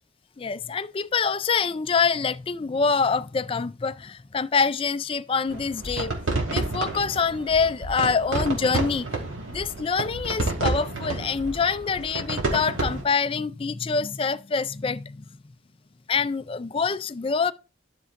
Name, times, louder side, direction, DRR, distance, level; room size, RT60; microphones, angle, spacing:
voice 1, 0.4-6.1 6.5-9.1 9.4-15.3 16.1-17.5, left 5 dB, 30° left, 0.4 m, -25 dB
sound 1, 5.5-13.0, right 2 dB, 90° right, 2.7 m, -30 dB
13.0 x 6.8 x 2.5 m
head